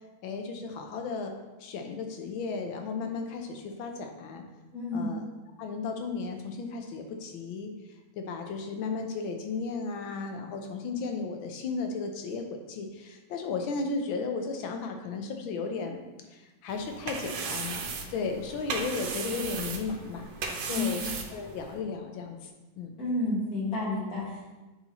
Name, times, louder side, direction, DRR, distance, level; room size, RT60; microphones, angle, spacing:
voice 1, 0.2-1.3 1.6-4.4 4.9-5.2 5.6-7.7 8.2-16.0 16.3-20.3 20.7-22.5 22.8-22.9, left 4 dB, 90° left, 4 dB, 1.6 m, -35 dB
voice 2, 4.7-5.1 20.6-21.1 23.0-24.5, left 2 dB, 50° left, -7 dB, 2.3 m, -31 dB
sound 1, 16.7-21.8, right 5 dB, 65° right, 1.1 m, -36 dB
9.5 x 4.3 x 3.0 m, 1.1 s
omnidirectional pair, 2.1 m